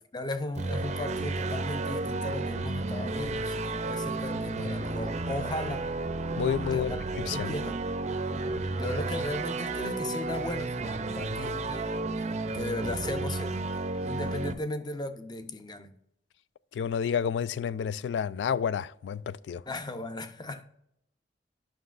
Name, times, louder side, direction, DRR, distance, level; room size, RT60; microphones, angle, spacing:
voice 1, 0.1-5.8 6.7-7.0 7.3-7.8 8.7-12.1 12.5-13.7 14.0-15.9 19.7-20.7, left 1 dB, 25° left, 0.6 m, -36 dB
sound 1, 0.5-14.5, right 3 dB, 40° right, 0.5 m, -32 dB
voice 2, 6.4-6.9 7.3-7.5 16.7-19.6, left 7 dB, 75° left, 0.3 m, -30 dB
11.5 x 5.9 x 2.5 m
head